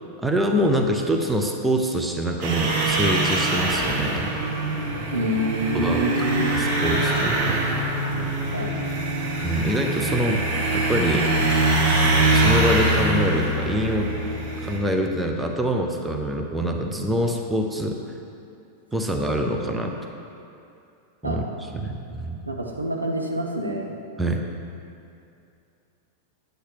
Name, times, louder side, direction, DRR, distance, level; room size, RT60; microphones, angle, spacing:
voice 1, 0.2-4.4 5.7-6.0 6.5-7.6 9.4-11.3 12.3-14.1 14.6-18.0 18.9-19.9 21.2-21.4 21.8-22.4 24.2-24.4, equal, 5° right, 2 dB, 0.9 m, -25 dB
sound 1, 2.4-14.8, right 2 dB, 45° right, 2.3 m, -23 dB
voice 2, 5.1-6.8 8.5-8.8 21.2-21.4 22.5-23.9, right 1 dB, 80° right, 0 dB, 1.1 m, -26 dB
10.0 x 8.0 x 4.7 m, 2.6 s
figure-of-eight pair, 90°, 0 cm